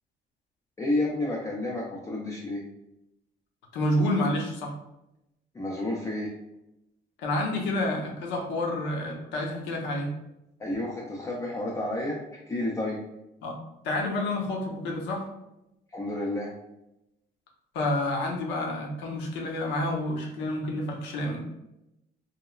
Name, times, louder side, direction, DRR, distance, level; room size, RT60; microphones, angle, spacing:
voice 1, 0.8-2.6 5.5-6.3 10.6-13.0 15.9-16.5, left 1 dB, 15° left, -3 dB, 0.3 m, -30 dB
voice 2, 3.7-4.7 7.2-10.1 13.4-13.6 13.8-15.2 17.7-21.4, left 1 dB, 90° left, 0 dB, 0.6 m, -29 dB
3.0 x 2.0 x 2.2 m, 0.88 s
cardioid pair, 125°, 18 cm